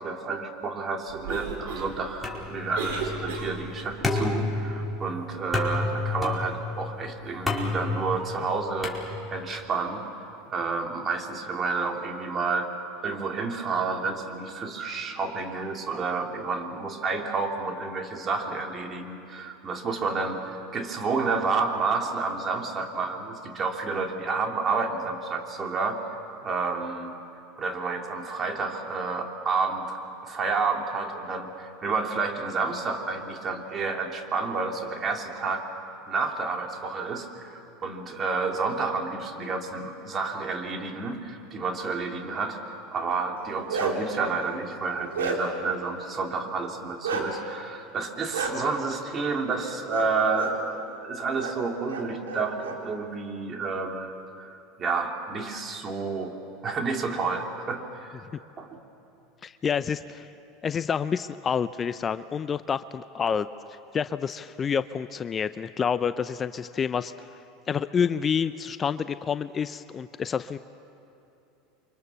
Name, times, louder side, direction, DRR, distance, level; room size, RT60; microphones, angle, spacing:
voice 1, 0.0-12.7 13.0-26.0 26.4-27.1 27.6-35.6 36.1-56.4 56.6-58.2 58.6-58.8, right 4 dB, 35° right, 2 dB, 3.3 m, -30 dB
Cough, 1.1-3.9, right 5 dB, 70° right, 5.1 m, -35 dB
sound 1, 2.2-9.6, left 3 dB, 5° left, 4.8 m, -31 dB
Bark, 43.4-44.2 44.7-45.7 47.0-47.3 48.3-48.5 49.9-50.1 50.3-50.5 51.4-51.5 51.9-52.7, right 4 dB, 85° right, 3.4 m, -30 dB
voice 2, 59.4-60.3 60.6-63.5 63.9-67.1 67.7-70.6, left 7 dB, 30° left, 13 dB, 0.6 m, -28 dB
29.0 x 24.5 x 7.1 m, 2.8 s
hypercardioid pair, 90°, 0 cm